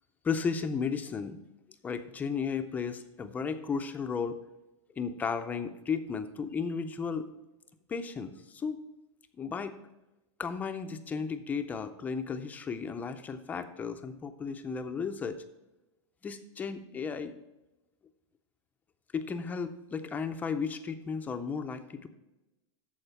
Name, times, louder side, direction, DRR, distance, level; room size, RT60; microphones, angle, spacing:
voice 1, 0.2-1.4 1.8-4.4 5.0-7.3 7.9-8.8 9.4-9.8 10.4-15.4 16.2-17.3 19.1-22.1, left 5 dB, 10° left, 8 dB, 0.4 m, -34 dB
13.5 x 4.8 x 4.5 m, 0.99 s
supercardioid pair, 165°, 15 cm